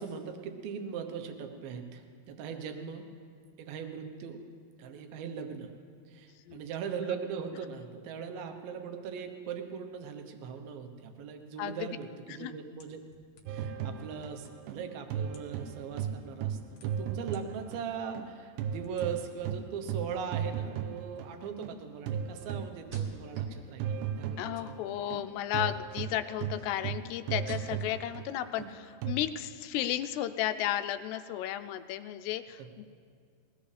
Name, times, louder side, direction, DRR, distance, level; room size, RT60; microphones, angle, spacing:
voice 1, 0.0-3.1 3.6-4.4 4.8-5.7 6.1-13.0 13.5-24.8 32.6-32.7, right 7 dB, 70° right, 6 dB, 2.7 m, -40 dB
voice 2, 11.6-12.0 12.3-12.5 24.4-32.8, left 12 dB, 90° left, 9 dB, 2.7 m, -34 dB
sound 1, 12.8-13.8 14.6-14.7 15.2-15.6 16.3-17.4 17.9-18.0 18.8-19.1, left 4 dB, 60° left, 2.7 m, -59 dB
sound 2, 13.5-18.3 18.6-29.1, right 8 dB, 90° right, 2.8 m, -36 dB
sound 3, 21.2-23.6 23.8-24.4 25.6-28.0 28.3-29.0 29.3-29.5, right 2 dB, 50° right, 1.9 m, -56 dB
21.5 x 17.0 x 3.3 m, 2.2 s
omnidirectional pair, 4.7 m